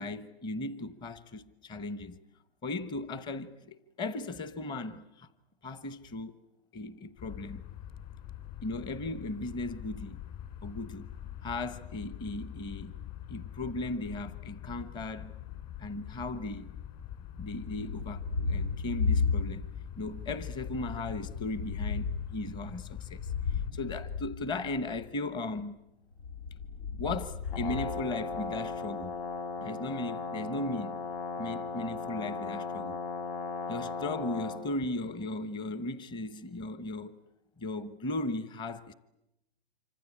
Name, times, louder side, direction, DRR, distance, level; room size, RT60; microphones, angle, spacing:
voice 1, 0.0-2.2 2.6-5.3 5.6-6.4 6.7-7.6 8.6-10.2 10.6-11.1 11.4-13.0 13.3-15.3 15.8-16.7 17.4-18.2 18.5-19.7 20.0-25.8 27.0-29.2 29.6-31.0 31.4-33.0 33.7-37.1 37.6-38.9, left 2 dB, 15° left, 1.0 m, -37 dB
sound 1, 7.2-23.7, left 11 dB, 30° left, 3.1 m, -44 dB
Thunder, 17.5-19.9 20.2-25.1 26.1-28.8, left 5 dB, 80° left, 3.3 m, -34 dB
Brass instrument, 27.4-34.6, left 3 dB, 65° left, 7.5 m, -37 dB
26.5 x 25.0 x 8.6 m
hypercardioid pair, 140°, 31 cm